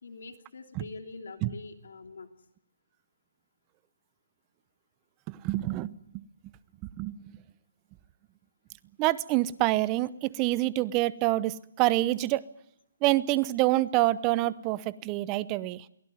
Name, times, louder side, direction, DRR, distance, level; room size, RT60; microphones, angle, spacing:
voice 1, 0.0-2.3, left 4 dB, 70° left, 5 dB, 2.9 m, -44 dB
voice 2, 5.4-5.9 7.0-7.1 9.0-12.4 13.0-15.8, right 17 dB, 25° right, 18 dB, 0.8 m, -26 dB
23.0 x 17.0 x 9.3 m, 0.78 s
hypercardioid pair, 150°, 0 cm